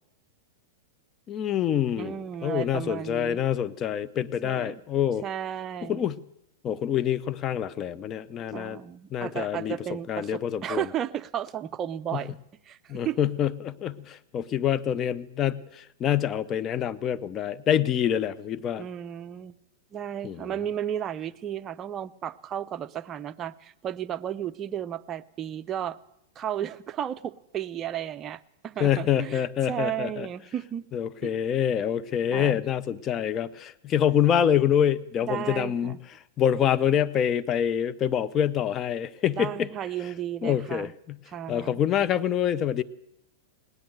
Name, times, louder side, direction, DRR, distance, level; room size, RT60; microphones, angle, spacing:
voice 1, 1.3-5.2 5.9-6.2 6.6-8.8 9.1-9.8 10.1-10.8 12.1-12.2 12.9-18.8 20.2-20.5 28.8-30.3 30.9-36.0 36.4-39.7 40.4-41.2 41.5-42.8, left 9 dB, 30° left, 15 dB, 0.6 m, -26 dB
voice 2, 2.0-3.4 4.4-4.8 5.2-6.1 8.5-12.4 12.6-13.2 18.8-19.6 19.9-26.0 26.4-30.9 31.2-31.3 32.3-32.6 35.3-36.0 39.3-40.9 41.3-41.8, right 10 dB, 30° right, 12 dB, 0.5 m, -34 dB
18.0 x 10.5 x 7.7 m, 0.82 s
hypercardioid pair, 115°, 0 cm